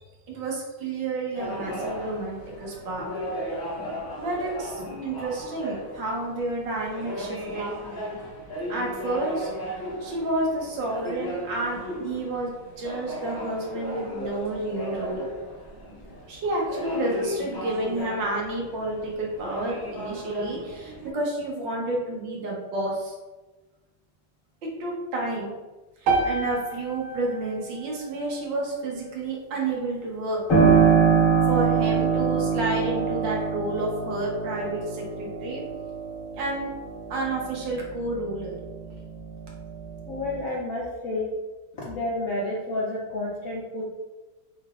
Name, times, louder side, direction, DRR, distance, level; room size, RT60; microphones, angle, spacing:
voice 1, 0.3-3.1 4.2-7.7 8.7-9.5 10.0-15.3 16.3-23.1 24.8-25.5 26.0-30.4 31.5-35.6 36.4-36.7 37.1-38.6, right 2 dB, 65° right, -2 dB, 1.6 m, -30 dB
sound 1, 1.3-21.1, equal, 85° left, 0.4 m, -36 dB
sound 2, 26.1-30.2, right 3 dB, 85° right, 1.6 m, -31 dB
Piano, 30.5-38.9 39.3-40.4, right 6 dB, 40° left, 1.7 m, -24 dB
voice 2, 40.1-41.3 41.7-43.8, left 2 dB, 65° left, -5 dB, 0.8 m, -30 dB
5.4 x 3.9 x 2.4 m, 1.2 s
omnidirectional pair, 2.2 m